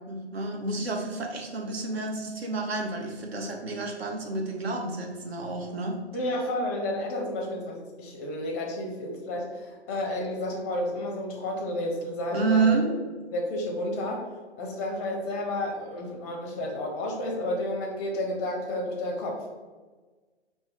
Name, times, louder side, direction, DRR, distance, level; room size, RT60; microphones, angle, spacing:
voice 1, 0.1-6.0 12.3-12.9, right 4 dB, 60° right, 2 dB, 1.0 m, -29 dB
voice 2, 6.1-12.7 13.3-14.2 14.6-19.6, left 1 dB, 15° left, -1 dB, 0.6 m, -31 dB
4.4 x 2.8 x 3.5 m, 1.3 s
hypercardioid pair, 140°, 34 cm